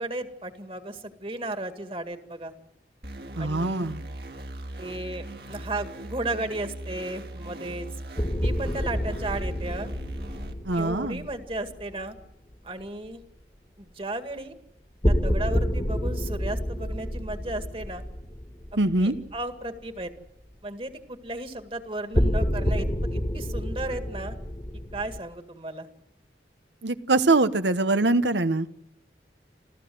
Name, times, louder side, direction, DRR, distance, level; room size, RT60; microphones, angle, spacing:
voice 1, 0.0-2.5 3.4-3.9 4.8-7.9 8.4-9.9 10.7-12.2 12.6-13.2 13.8-14.5 15.1-18.0 19.0-20.1 20.6-22.9 23.1-24.4 24.9-25.9, right 2 dB, 30° right, 8 dB, 2.0 m, -34 dB
sound 1, 3.0-10.5, right 1 dB, 60° right, 2.4 m, -39 dB
voice 2, 3.3-4.0 10.6-11.2 18.8-19.1 26.8-28.7, right 2 dB, 90° right, 12 dB, 1.2 m, -23 dB
sound 2, 8.2-12.3 15.0-19.4 19.7-19.8 22.1-25.2, equal, 25° left, 1.6 m, -28 dB
28.5 x 14.5 x 7.8 m, 0.80 s
head